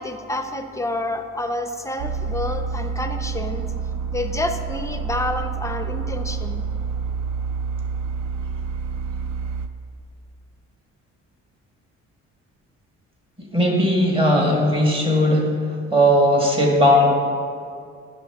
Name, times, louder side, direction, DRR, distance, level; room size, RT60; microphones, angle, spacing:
voice 1, 0.0-3.6 4.1-6.6, left 2 dB, 10° left, 7 dB, 0.5 m, -28 dB
sound 1, 2.0-9.7, right 5 dB, 70° right, 0.5 m, -28 dB
voice 2, 13.5-15.5 15.9-17.1, equal, 15° right, -1 dB, 1.7 m, -17 dB
9.5 x 6.3 x 3.5 m, 2.3 s
cardioid pair, 90°, 30 cm